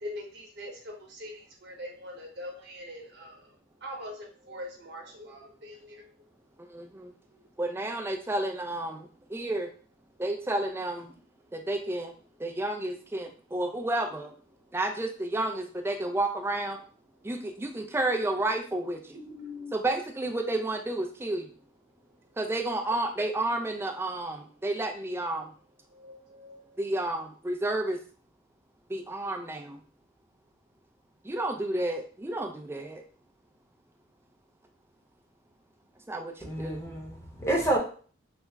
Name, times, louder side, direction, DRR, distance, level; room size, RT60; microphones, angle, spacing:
voice 1, 0.0-6.1 7.3-7.4 19.1-19.8 25.9-26.8, left 1 dB, 55° right, -1 dB, 0.9 m, -43 dB
voice 2, 6.7-7.1 7.6-9.7 10.2-11.1 11.5-12.1 12.4-14.3 14.7-16.8 17.2-19.2 19.7-21.5 22.4-25.5 26.8-28.0 28.9-29.8 31.2-33.0 36.1-36.9, right 2 dB, 10° right, 3 dB, 0.3 m, -31 dB
voice 3, 36.4-37.8, right 2 dB, 15° left, -2 dB, 0.8 m, -29 dB
3.3 x 2.0 x 3.4 m, 0.42 s
head